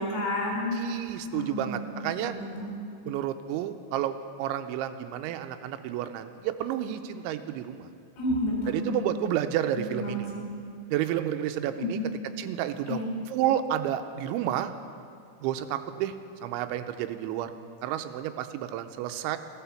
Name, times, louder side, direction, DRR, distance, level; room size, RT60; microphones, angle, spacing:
voice 1, 0.0-0.8 1.3-1.7 2.0-2.7 8.2-8.9 9.7-10.2 11.8-12.1 12.9-13.1, left 1 dB, 70° left, -3 dB, 6.4 m, -30 dB
voice 2, 0.7-2.3 3.0-7.9 8.7-10.3 10.9-12.0 12.4-13.0 13.3-14.7 15.4-16.1 16.4-17.5 17.8-19.4, right 11 dB, 85° right, 8 dB, 3.0 m, -30 dB
15.5 x 11.5 x 7.1 m, 2.3 s
omnidirectional pair, 5.3 m